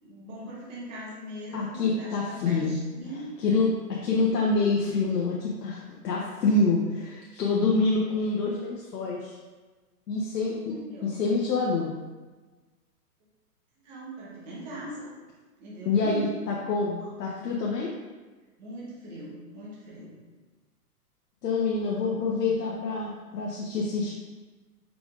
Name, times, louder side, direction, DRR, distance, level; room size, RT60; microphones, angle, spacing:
voice 1, 0.0-3.6 8.1-8.2 10.6-11.2 13.8-15.1 15.6-16.4 17.0-17.4 18.6-20.2, right 1 dB, 25° right, -6 dB, 0.9 m, -41 dB
voice 2, 1.5-2.8 3.4-3.7 4.0-5.8 6.0-9.4 10.1-10.7 11.0-11.9 15.8-17.9 21.4-24.1, left 3 dB, 85° left, -4 dB, 0.9 m, -26 dB
4.9 x 3.4 x 2.4 m, 1.3 s
hypercardioid pair, 155°, 47 cm